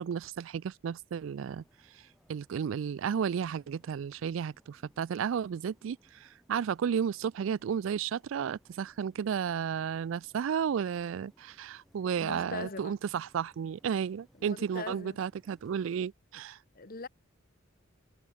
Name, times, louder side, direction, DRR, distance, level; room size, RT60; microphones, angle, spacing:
voice 1, 0.0-1.6 2.3-16.6, right 7 dB, 70° right, 0.3 m, -33 dB
sound 1, 1.1-16.0, equal, ahead, 7.2 m, -67 dB
voice 2, 12.2-13.0 14.3-15.2 16.7-17.1, left 3 dB, 45° left, 1.4 m, -41 dB
head